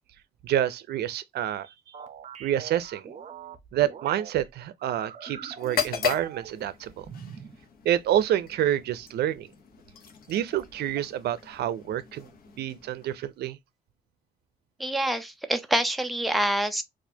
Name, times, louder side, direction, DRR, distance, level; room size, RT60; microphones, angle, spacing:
voice 1, 0.4-1.7 2.4-3.0 3.7-7.1 7.8-9.5 10.3-12.3 12.6-13.6, right 11 dB, 85° right, 0.5 m, -28 dB
Droid Communications, 1.9-4.3 4.8-6.7 7.0-7.6, right 7 dB, 45° right, 0.7 m, -43 dB
sound 1, 5.6-13.4, left 8 dB, 65° left, 0.9 m, -37 dB
voice 2, 14.8-16.8, right 1 dB, ahead, 0.5 m, -26 dB
4.2 x 2.5 x 2.7 m
cardioid pair, 150°, 16 cm